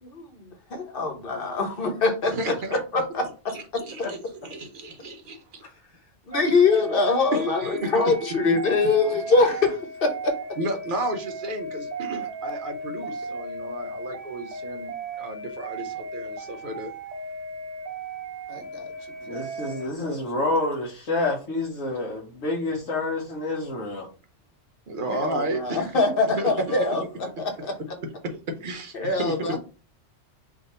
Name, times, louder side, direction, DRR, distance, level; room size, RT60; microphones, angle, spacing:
voice 1, 0.0-3.5 6.3-10.4 18.5-18.9 20.0-20.2 25.1-27.0 27.4-27.7 28.9-29.6, left 3 dB, 50° left, 1.0 m, -24 dB
voice 2, 2.2-2.8 3.5-5.6 6.4-6.6 7.3-8.3 9.4-9.5 10.6-16.9 24.9-26.0 26.4-26.9 28.0-29.6, right 1 dB, 50° right, 0.8 m, -32 dB
sound 1, 6.3-19.9, right 2 dB, 75° right, 1.1 m, -36 dB
voice 3, 19.2-24.1, left 2 dB, 85° left, 1.3 m, -28 dB
3.6 x 2.6 x 4.1 m
omnidirectional pair, 1.3 m